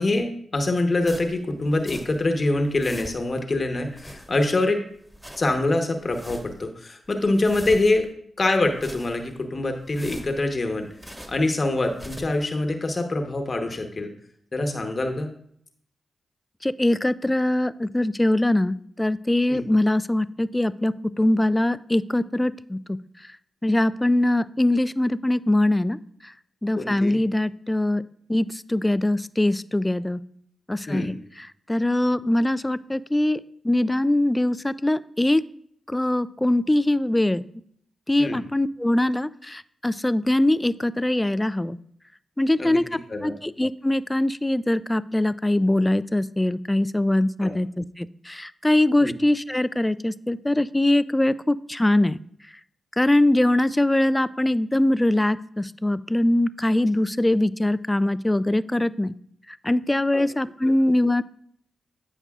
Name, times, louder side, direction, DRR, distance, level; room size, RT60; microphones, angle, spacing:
voice 1, 0.0-4.8 5.4-8.1 8.4-10.9 11.3-14.1 14.5-15.3 19.5-19.6 26.8-27.2 30.9-31.1 38.2-38.4 42.6-42.8 43.1-43.3 47.4-47.5 49.0-49.1 60.1-60.2, left 2 dB, 45° left, 4 dB, 1.1 m, -24 dB
sound 1, 1.0-2.3 2.6-3.4 3.8-4.6 5.0-5.6 6.0-6.7 7.1-8.1 8.6-9.4 9.8-11.5 11.8-12.5, equal, 10° right, 1.8 m, -43 dB
voice 2, 16.6-23.0 23.6-26.0 26.6-28.0 28.3-30.2 30.7-33.4 33.6-35.4 35.9-37.4 38.1-41.8 42.4-42.8 43.2-52.2 53.0-59.1 59.6-61.2, left 1 dB, 15° left, 16 dB, 0.4 m, -22 dB
12.5 x 5.4 x 2.4 m, 0.65 s
supercardioid pair, 40°, 0 cm